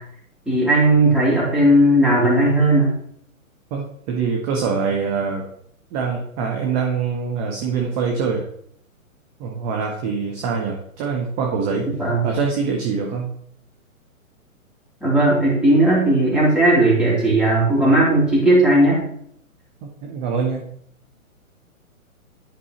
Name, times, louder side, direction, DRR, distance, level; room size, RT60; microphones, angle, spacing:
voice 1, 0.5-2.9 12.0-12.3 15.0-19.0, right 1 dB, ahead, -8 dB, 3.0 m, -16 dB
voice 2, 3.7-5.4 5.9-8.5 9.4-11.9 12.2-13.3 19.8-20.7, right 5 dB, 15° right, 1 dB, 0.6 m, -24 dB
10.5 x 5.3 x 2.9 m, 0.68 s
figure-of-eight pair, 130°, 42 cm